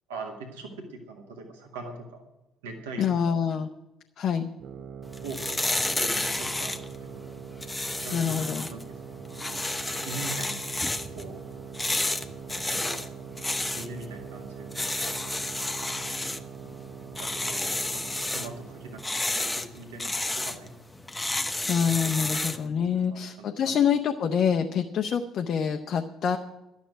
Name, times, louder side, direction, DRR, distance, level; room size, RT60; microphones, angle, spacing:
voice 1, 0.1-2.2 2.6-3.4 5.2-5.6 5.9-7.3 8.0-8.8 9.1-9.6 10.1-10.6 11.1-11.4 12.7-13.0 13.7-15.0 17.2-20.7 22.9-23.8, right 3 dB, 70° right, 2 dB, 1.8 m, -42 dB
voice 2, 3.0-3.7 4.2-4.5 8.1-8.7 21.7-26.4, left 7 dB, 50° left, 4 dB, 0.8 m, -26 dB
sound 1, 4.6-19.2, right 7 dB, 50° right, 0.7 m, -42 dB
sound 2, 5.0-22.7, left 2 dB, 15° left, 1.0 m, -32 dB
12.0 x 7.2 x 10.0 m, 0.97 s
figure-of-eight pair, 50°, 0 cm